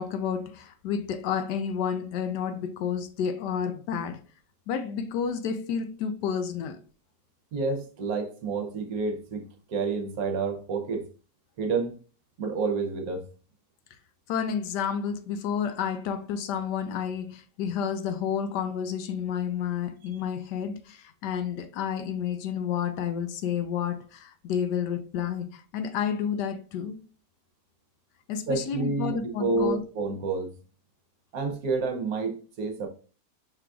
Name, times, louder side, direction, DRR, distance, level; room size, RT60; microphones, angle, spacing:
voice 1, 0.0-4.2 4.7-6.8 14.3-27.0 28.3-29.8, left 7 dB, 80° left, 1.2 m, -30 dB
voice 2, 7.5-11.1 11.6-12.0 12.4-13.2 28.5-30.5 31.3-32.9, right 4 dB, 65° right, 1.1 m, -29 dB
5.7 x 3.7 x 2.3 m
omnidirectional pair, 1.8 m